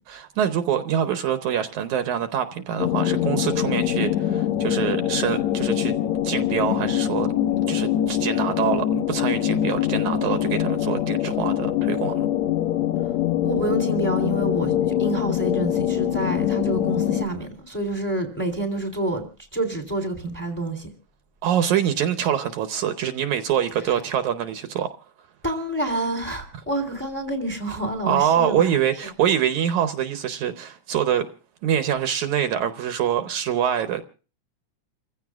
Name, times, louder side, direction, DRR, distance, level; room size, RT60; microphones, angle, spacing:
voice 1, 0.1-5.9 6.2-7.3 7.7-12.3 21.4-24.9 28.1-31.3 31.6-34.0, right 9 dB, 75° right, 2.2 m, -25 dB
sound 1, 2.8-17.3, left 11 dB, 70° left, 2.3 m, -24 dB
voice 2, 13.4-19.2 19.5-20.9 25.4-28.8, right 2 dB, 5° left, 2.7 m, -28 dB
29.0 x 15.5 x 2.4 m
omnidirectional pair, 3.5 m